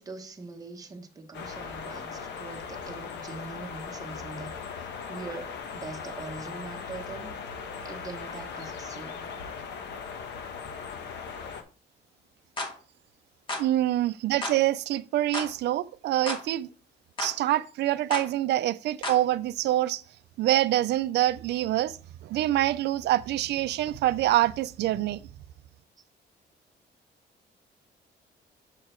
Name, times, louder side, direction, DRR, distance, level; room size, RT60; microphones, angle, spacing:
voice 1, 0.0-7.4 7.8-9.4, right 3 dB, 20° right, 0.9 m, -42 dB
sound 1, 1.3-11.6, left 5 dB, 75° left, 1.2 m, -39 dB
sound 2, 12.6-12.7 13.5-13.7 14.4-14.6 15.3-15.5 16.3-16.4 17.2-17.4 18.1-18.3 19.0-19.2, left 2 dB, 25° left, 1.3 m, -32 dB
voice 2, 13.6-16.7 17.2-20.0 20.4-22.0 22.2-25.2, right 14 dB, 70° right, 0.4 m, -25 dB
7.8 x 4.7 x 4.4 m
cardioid pair, 180°, 18 cm